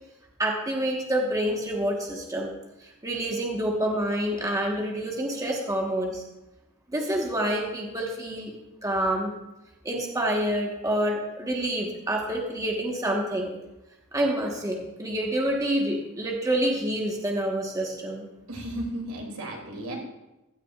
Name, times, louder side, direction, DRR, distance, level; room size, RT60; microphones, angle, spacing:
voice 1, 0.4-2.5 2.8-6.2 6.9-8.5 8.8-9.3 9.8-13.5 14.1-18.3, right 1 dB, 15° right, -1 dB, 1.4 m, -27 dB
voice 2, 18.5-20.0, right 1 dB, 75° right, 0 dB, 2.9 m, -34 dB
15.5 x 13.0 x 2.5 m, 0.97 s
head